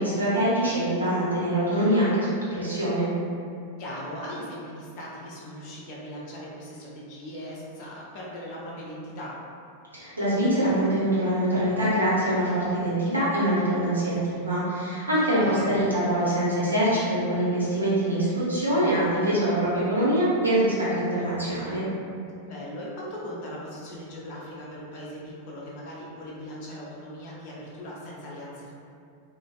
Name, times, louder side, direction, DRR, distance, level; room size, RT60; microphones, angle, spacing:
voice 1, 0.0-3.1 9.9-21.8, right 1 dB, 80° right, -9 dB, 0.7 m, -24 dB
voice 2, 3.8-9.3 15.4-15.8 22.4-28.7, equal, 45° left, -5 dB, 0.6 m, -39 dB
2.5 x 2.2 x 2.2 m, 2.4 s
figure-of-eight pair, 90°, 0 cm